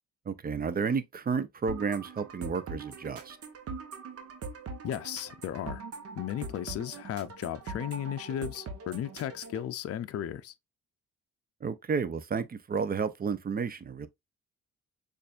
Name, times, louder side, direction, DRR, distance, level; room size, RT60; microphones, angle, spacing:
voice 1, 0.3-3.4 11.6-14.1, right 5 dB, 30° right, 0.6 m, -31 dB
sound 1, 1.7-9.7, right 4 dB, 50° right, 0.9 m, -42 dB
voice 2, 4.8-5.8 6.1-10.5, left 10 dB, 50° left, 0.5 m, -35 dB
6.6 x 2.6 x 2.4 m
cardioid pair, 90°, 30 cm